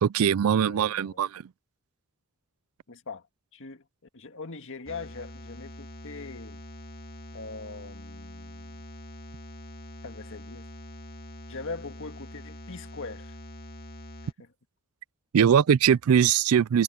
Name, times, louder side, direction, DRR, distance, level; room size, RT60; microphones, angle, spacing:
voice 1, 0.0-1.4 15.3-16.8, right 8 dB, 70° right, 0.4 m, -21 dB
voice 2, 0.5-1.2 2.9-3.3 3.5-3.8 4.1-6.6 7.3-8.8 10.0-10.7 11.5-13.3 14.4-14.5, left 4 dB, 60° left, 1.9 m, -41 dB
sound 1, 4.9-14.3, left 1 dB, 45° left, 2.3 m, -44 dB
head